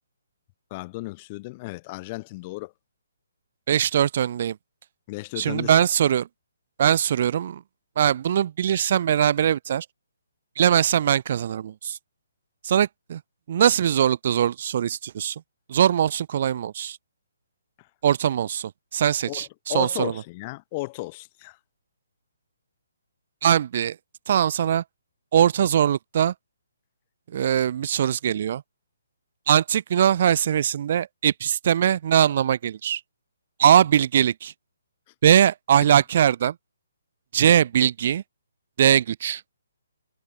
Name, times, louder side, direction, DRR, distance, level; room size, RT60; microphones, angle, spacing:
voice 1, 0.7-2.7 5.1-5.7 19.2-21.6, left 22 dB, 25° left, 2.1 m, -34 dB
voice 2, 3.7-4.6 5.4-6.3 6.8-7.6 8.0-9.8 10.6-12.0 12.6-13.2 13.5-15.3 15.7-17.0 18.0-20.1 23.4-24.0 24.3-24.8 25.3-26.3 27.3-28.6 29.5-33.0 33.6-34.5 35.2-36.5 37.3-38.2 38.8-39.4, right 9 dB, 45° right, 1.2 m, -21 dB
hypercardioid pair, 160°, 0 cm